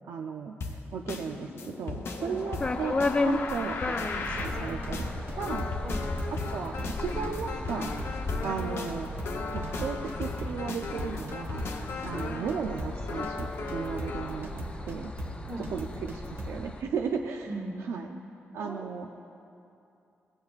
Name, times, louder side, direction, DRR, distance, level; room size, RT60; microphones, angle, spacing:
voice 1, 0.1-0.5 0.9-5.1 5.3-5.7 6.5-8.0 8.4-9.1 9.5-11.6 12.0-15.1 15.7-17.5 17.9-18.2 18.5-19.1, right 6 dB, 90° right, 3 dB, 0.4 m, -35 dB
sound 1, 0.6-14.4, left 3 dB, 75° left, 0.7 m, -37 dB
sound 2, 2.6-16.8, left 3 dB, 25° left, 0.4 m, -36 dB
sound 3, 4.1-16.6, right 1 dB, 70° right, 1.1 m, -39 dB
voice 2, 17.5-17.9 18.6-18.9, right 2 dB, 50° right, 0 dB, 1.2 m, -38 dB
15.5 x 8.4 x 2.4 m, 2.7 s
cardioid pair, 110°, 4 cm